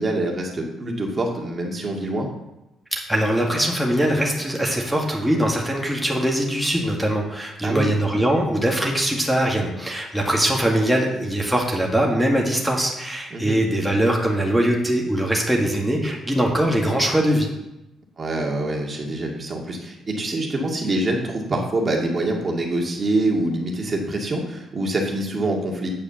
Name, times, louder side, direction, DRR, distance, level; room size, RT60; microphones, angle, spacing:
voice 1, 0.0-2.3 7.6-7.9 13.3-13.6 18.2-25.9, right 2 dB, 35° right, 0 dB, 2.1 m, -25 dB
voice 2, 2.9-17.5, right 1 dB, ahead, -2 dB, 1.9 m, -22 dB
8.7 x 4.9 x 7.2 m, 0.96 s
cardioid pair, 90°, 0 cm